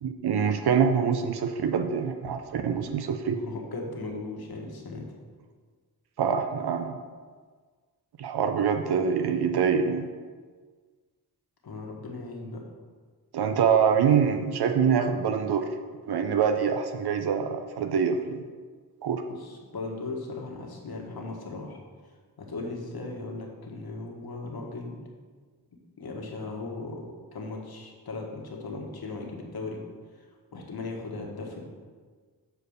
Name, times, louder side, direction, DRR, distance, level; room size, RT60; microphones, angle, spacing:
voice 1, 0.0-3.4 6.2-7.0 8.2-10.1 13.3-15.7 16.1-18.4 19.0-19.2, right 7 dB, 80° right, 6 dB, 0.7 m, -25 dB
voice 2, 3.4-5.1 11.6-12.6 19.3-21.8 22.4-25.0 26.0-29.8 30.1-30.2 30.5-31.6, left 3 dB, 70° left, 0 dB, 1.5 m, -37 dB
7.1 x 4.6 x 6.4 m, 1.5 s
wide cardioid pair, 105°, 38 cm